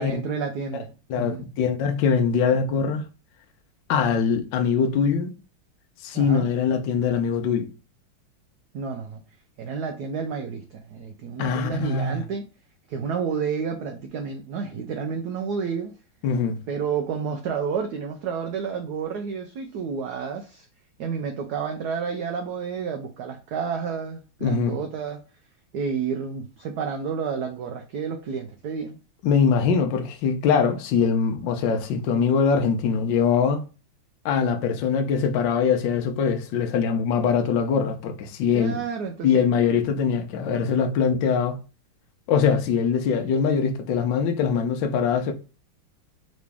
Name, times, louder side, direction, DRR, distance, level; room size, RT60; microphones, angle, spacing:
voice 1, 0.0-1.5 6.1-6.5 8.7-9.2 9.6-12.5 12.9-16.0 16.7-20.7 21.0-25.2 25.7-29.0 38.5-39.4, right 6 dB, 85° right, 0.8 m, -30 dB
voice 2, 1.1-3.0 3.9-5.3 6.0-7.7 11.4-12.2 16.2-16.6 24.4-24.8 29.2-33.6 34.2-38.8 39.2-41.6 42.3-45.3, left 6 dB, 70° left, 1.3 m, -22 dB
3.9 x 3.1 x 3.4 m
omnidirectional pair, 2.3 m